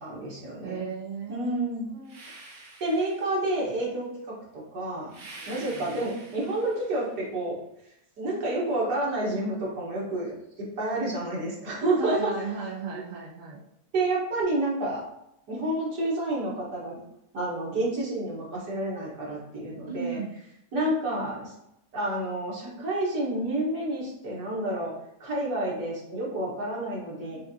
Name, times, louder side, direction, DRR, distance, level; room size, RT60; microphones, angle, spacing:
voice 1, 0.0-0.8 1.3-1.9 2.8-5.1 5.5-7.5 8.2-12.3 12.9-13.0 13.9-15.0 15.5-17.0 17.3-20.2 20.7-21.5 21.9-24.9 25.2-27.4, right 1 dB, 80° right, -5 dB, 1.9 m, -29 dB
voice 2, 0.6-1.6 1.9-2.2 5.3-6.1 12.0-13.6 19.9-20.3, right 5 dB, 40° right, -1 dB, 0.8 m, -36 dB
sound 1, 2.0-3.7 5.1-7.2, right 2 dB, 60° right, 1.7 m, -47 dB
6.2 x 2.5 x 2.7 m, 0.82 s
omnidirectional pair, 1.7 m